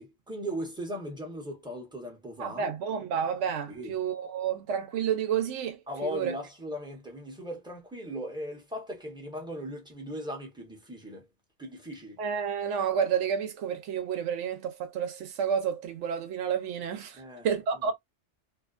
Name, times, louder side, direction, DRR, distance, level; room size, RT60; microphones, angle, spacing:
voice 1, 0.0-2.7 3.7-3.9 5.9-11.3 11.6-12.2 17.1-17.5 17.9-18.0, equal, 5° right, 0.7 m, -38 dB
voice 2, 2.4-6.3 12.2-17.9, right 7 dB, 90° right, 0.9 m, -30 dB
2.6 x 2.2 x 2.4 m
omnidirectional pair, 1.2 m